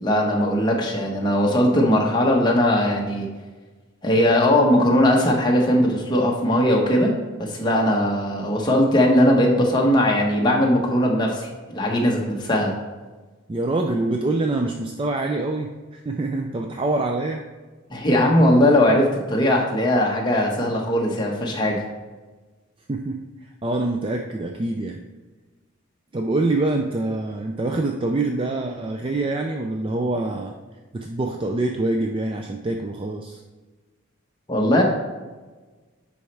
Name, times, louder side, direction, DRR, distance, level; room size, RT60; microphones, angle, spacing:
voice 1, 0.0-3.3 4.0-12.7 17.9-21.8 34.5-34.8, left 1 dB, 20° left, -1 dB, 1.0 m, -19 dB
voice 2, 13.5-17.4 22.9-23.3 23.6-25.0 26.1-30.5 30.9-33.4, right 2 dB, 25° right, 2 dB, 0.3 m, -25 dB
10.0 x 4.2 x 3.3 m, 1.3 s
head